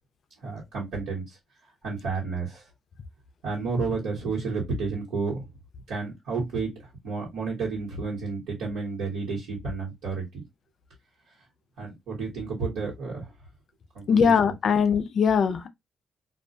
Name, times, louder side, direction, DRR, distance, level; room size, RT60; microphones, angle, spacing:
voice 1, 0.4-1.4 1.8-2.6 3.4-5.4 5.9-6.7 7.0-10.4 11.8-13.3 13.9-14.3 15.4-15.5, right 4 dB, 90° right, 1.1 m, -31 dB
voice 2, 14.1-15.7, left 6 dB, 55° left, 0.4 m, -21 dB
2.3 x 2.1 x 2.5 m
cardioid pair, 90°, 0 cm